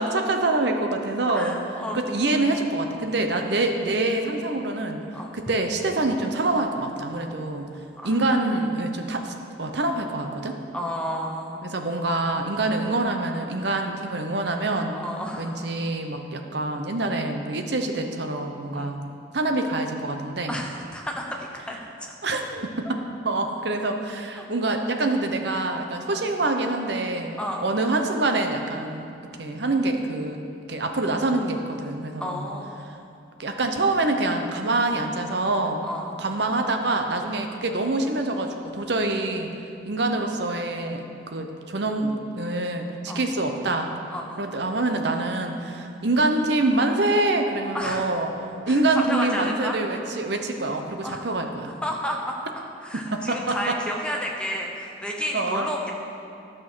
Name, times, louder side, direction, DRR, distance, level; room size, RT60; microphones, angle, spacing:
voice 1, 0.0-1.6 1.9-5.0 5.3-7.7 8.0-10.5 11.6-15.0 15.4-19.0 19.3-20.6 22.2-23.0 23.2-29.1 29.4-30.4 30.7-32.5 33.4-35.8 36.2-39.5 39.8-43.9 44.4-48.3 48.7-51.7 52.9-53.8 55.3-55.7, right 2 dB, 60° right, 5 dB, 0.9 m, -25 dB
voice 2, 1.3-2.0 5.1-5.3 8.0-8.2 10.7-11.6 14.9-15.6 18.7-18.9 20.5-21.8 24.3-24.5 26.1-26.2 27.4-27.6 32.2-32.8 35.8-36.1 43.1-43.2 44.1-44.4 47.7-48.1 48.7-48.8 49.1-49.8 51.0-51.2 51.8-52.4 52.8-55.9, equal, 5° left, 0 dB, 0.9 m, -31 dB
12.5 x 6.2 x 6.2 m, 2.6 s
head